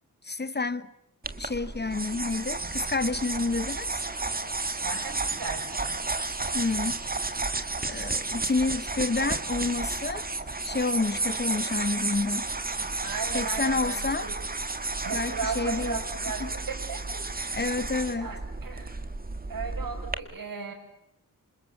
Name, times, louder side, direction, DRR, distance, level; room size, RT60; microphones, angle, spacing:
voice 1, 0.2-0.9 1.4-4.0 6.5-7.0 7.8-10.2 10.6-12.5 13.3-14.3 15.1-16.0 16.4-16.5 17.5-18.3, left 3 dB, 30° left, 1.0 m, -29 dB
sound 1, 1.2-20.1, right 3 dB, 25° right, 1.8 m, -32 dB
voice 2, 4.8-5.9 13.0-14.3 15.0-17.6 18.2-19.0 19.5-20.7, right 5 dB, 70° right, 6.8 m, -36 dB
28.0 x 27.0 x 7.3 m
wide cardioid pair, 145°, 35 cm